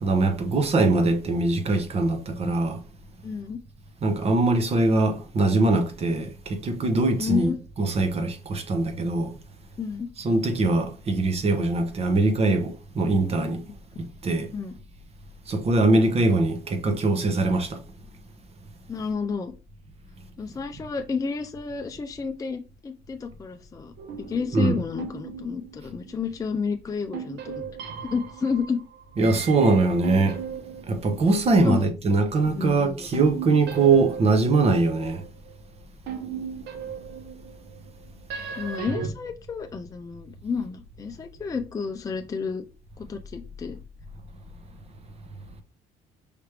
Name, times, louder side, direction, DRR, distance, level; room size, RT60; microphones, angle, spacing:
voice 1, 0.0-2.8 4.0-7.5 7.8-9.3 10.2-13.6 14.2-14.5 15.5-17.8 24.5-24.8 29.2-30.4 30.9-35.2, right 3 dB, 35° right, 0.9 m, -22 dB
voice 2, 3.2-3.6 7.2-7.5 9.8-10.1 13.7-13.8 14.5-14.7 18.9-19.5 20.4-23.9 24.2-27.6 28.1-28.8 31.6-31.9 32.5-32.8 38.6-42.6 43.0-43.8, left 5 dB, 20° left, 0.5 m, -30 dB
sound 1, 24.0-26.4 27.1-31.9 33.1-35.5 36.1-39.1, right 7 dB, 80° right, 0.8 m, -37 dB
4.9 x 3.1 x 3.3 m
cardioid pair, 110°, 17 cm